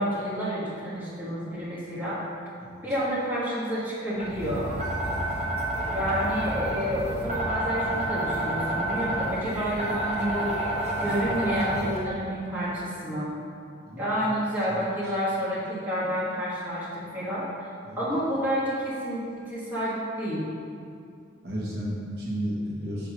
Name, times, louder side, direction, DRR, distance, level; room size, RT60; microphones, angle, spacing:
voice 1, 0.0-2.2 2.8-4.7 5.9-10.5 11.0-13.3 14.0-17.7 18.0-20.5, equal, 10° right, -9 dB, 1.5 m, -29 dB
sound 1, 4.2-12.0, right 1 dB, 30° right, 1.2 m, -29 dB
voice 2, 21.4-23.1, equal, 50° right, -6 dB, 1.4 m, -33 dB
5.9 x 4.5 x 6.3 m, 2.3 s
head